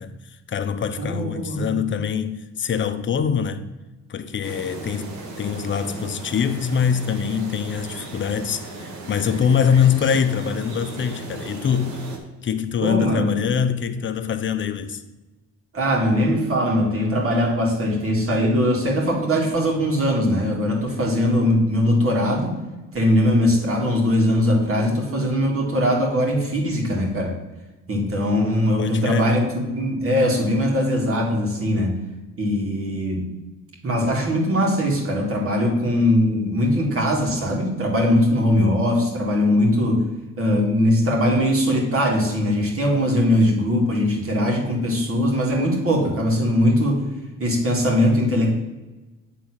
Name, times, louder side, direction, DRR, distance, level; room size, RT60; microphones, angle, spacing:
voice 1, 0.0-3.6 4.1-12.0 12.4-15.0 28.8-29.3, left 7 dB, 40° left, 0.7 m, -24 dB
voice 2, 1.0-1.8 12.8-13.5 15.7-22.6 22.9-27.3 27.9-32.0 32.4-33.3 33.8-40.1 40.4-47.0 47.4-48.6, left 1 dB, 45° right, 2.2 m, -21 dB
sound 1, 4.4-12.2, right 3 dB, 75° right, 1.6 m, -36 dB
7.9 x 3.7 x 6.1 m
cardioid pair, 90°, 30 cm